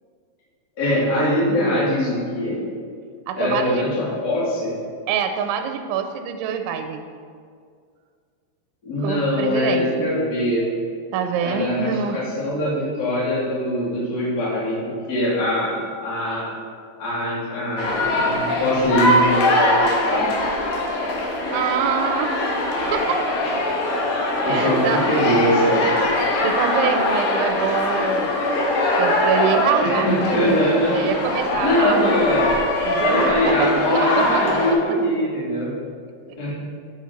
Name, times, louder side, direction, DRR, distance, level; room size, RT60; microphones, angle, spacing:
voice 1, 0.8-2.6 3.4-4.7 8.8-10.7 11.4-14.8 15.1-16.5 17.0-20.3 24.4-25.9 29.8-31.0 31.6-32.6 32.9-35.7 36.4-36.5, left 1 dB, 30° left, -8 dB, 2.3 m, -22 dB
voice 2, 3.3-3.8 5.1-7.0 9.0-10.1 11.1-12.2 21.5-22.5 22.9-23.2 24.5-25.2 26.4-28.4 29.0-30.1 30.9-32.1 32.8-34.5, right 7 dB, 85° right, 7 dB, 3.0 m, -25 dB
sound 1, 17.8-34.7, left 1 dB, 65° left, 2.5 m, -22 dB
9.9 x 7.2 x 4.4 m, 2.1 s
omnidirectional pair, 5.3 m